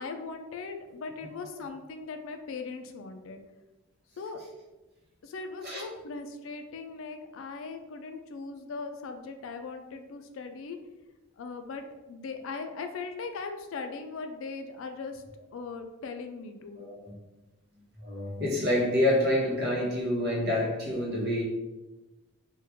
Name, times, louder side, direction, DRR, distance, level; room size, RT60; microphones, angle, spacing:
voice 1, 0.0-3.4 4.2-4.4 5.2-10.8 11.4-15.2 15.5-16.8, left 4 dB, 75° left, 6 dB, 0.4 m, -39 dB
voice 2, 16.8-17.1 18.0-21.4, left 1 dB, 50° right, -4 dB, 0.9 m, -27 dB
3.1 x 2.3 x 3.4 m, 1.1 s
head